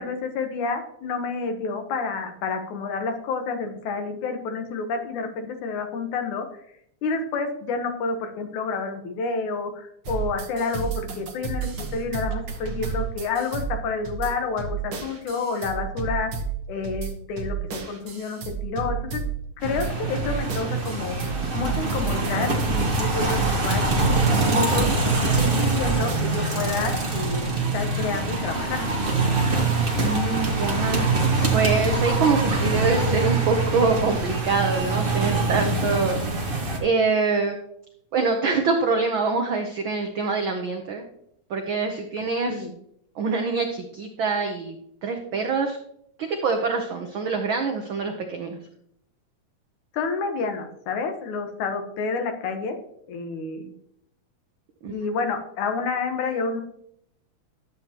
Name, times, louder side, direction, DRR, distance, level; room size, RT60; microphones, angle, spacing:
voice 1, 0.0-6.5 7.0-16.3 16.7-17.6 17.9-19.2 19.6-21.2 21.5-23.9 24.5-28.9 42.5-42.7 49.9-52.8 53.1-53.7 54.9-56.6, left 4 dB, 80° left, 6 dB, 2.6 m, -29 dB
sound 1, 10.1-26.6, right 6 dB, 50° right, 1.5 m, -32 dB
sound 2, 19.6-36.8, right 3 dB, 30° right, 0.9 m, -24 dB
voice 2, 24.3-25.0 30.0-31.1 31.5-37.6 38.1-41.0 41.5-42.7 43.2-44.7 45.0-45.8 46.2-48.6 54.8-54.9, right 4 dB, 85° right, 4 dB, 1.1 m, -25 dB
12.5 x 8.0 x 2.9 m, 0.71 s
omnidirectional pair, 3.4 m